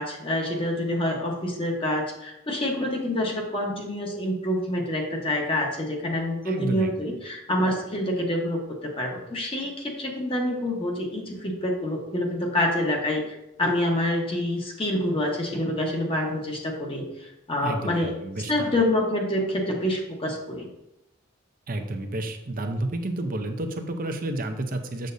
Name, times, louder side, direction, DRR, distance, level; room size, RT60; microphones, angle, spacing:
voice 1, 0.0-18.2 18.5-20.7, left 1 dB, 25° left, 0 dB, 1.2 m, -27 dB
voice 2, 6.4-6.9 17.6-18.7 21.7-25.1, right 1 dB, 45° right, 6 dB, 0.7 m, -30 dB
7.8 x 6.4 x 2.7 m, 0.86 s
head